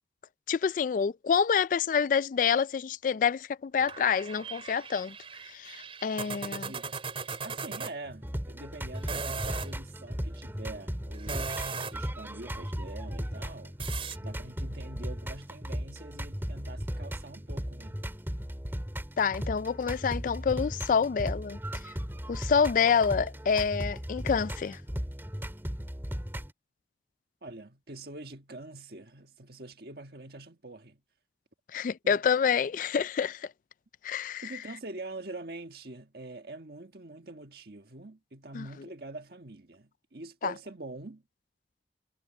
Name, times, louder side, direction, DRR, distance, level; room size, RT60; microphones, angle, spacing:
voice 1, 0.5-5.1 5.5-6.7 19.2-21.6 22.3-24.8 31.7-33.5 34.0-34.6 38.5-38.7 40.4-40.5, left 6 dB, 45° left, 0.3 m, -27 dB
sound 1, 3.8-7.9 8.9-9.7 11.1-12.1 13.8-14.2, right 4 dB, 30° right, 3.9 m, -38 dB
voice 2, 6.3-7.0 7.4-13.8 14.2-18.0 27.4-31.0 32.0-32.2 34.4-41.2, right 2 dB, 60° right, 1.6 m, -45 dB
sound 2, 8.0-26.5, equal, 15° right, 2.9 m, -36 dB
head